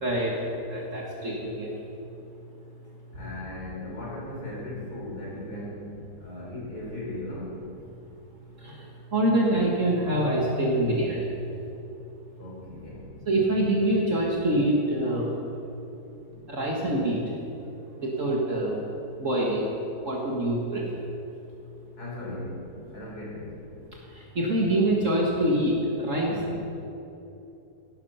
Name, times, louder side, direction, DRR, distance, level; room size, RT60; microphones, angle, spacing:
voice 1, 0.0-1.7 9.1-11.3 13.3-15.3 16.5-17.2 18.0-18.8 19.2-19.7 20.0-20.8 24.4-25.7 26.0-26.3, right 1 dB, 50° right, -3 dB, 2.2 m, -25 dB
voice 2, 3.1-7.6 12.4-13.1 22.0-22.6 22.9-23.6 26.2-26.6, left 1 dB, 65° left, -4 dB, 4.5 m, -37 dB
16.0 x 12.5 x 5.8 m, 2.9 s
omnidirectional pair, 1.8 m